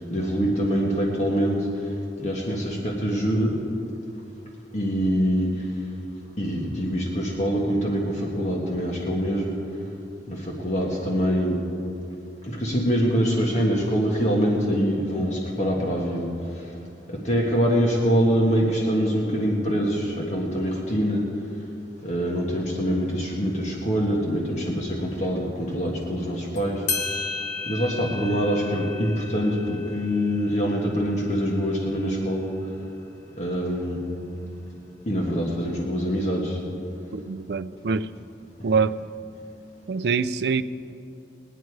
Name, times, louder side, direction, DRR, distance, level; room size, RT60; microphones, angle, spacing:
voice 1, 0.1-1.6 2.2-3.5 4.7-5.5 6.4-9.6 10.3-11.6 12.5-16.3 17.2-21.2 22.0-26.8 27.7-32.5 33.4-34.0 35.1-36.6, equal, 40° left, -2 dB, 1.5 m, -24 dB
sound 1, 26.6-26.7 26.9-32.0, left 4 dB, 70° left, 1.2 m, -34 dB
voice 2, 37.1-38.1 38.6-39.0 39.9-40.6, right 5 dB, 65° right, 13 dB, 0.4 m, -24 dB
20.5 x 9.2 x 4.7 m, 2.8 s
head